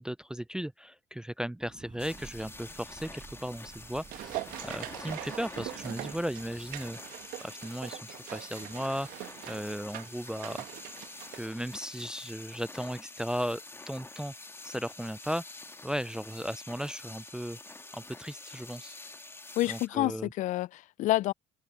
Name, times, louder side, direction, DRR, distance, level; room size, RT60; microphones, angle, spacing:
voice 1, 0.0-4.4 4.6-7.0 7.4-10.6 11.3-13.6 13.9-14.3 14.6-15.4 15.8-17.6 17.9-18.9 19.7-20.3, equal, 5° right, 0.3 m, -36 dB
sound 1, 1.6-6.9, right 4 dB, 30° right, 6.9 m, -53 dB
sound 2, 2.0-19.9, left 2 dB, 15° left, 2.1 m, -47 dB
sound 3, 3.5-12.1 12.4-12.5, right 17 dB, 70° right, 1.5 m, -43 dB
voice 2, 19.6-21.3, left 16 dB, 55° left, 0.4 m, -28 dB
hypercardioid pair, 70°, 15 cm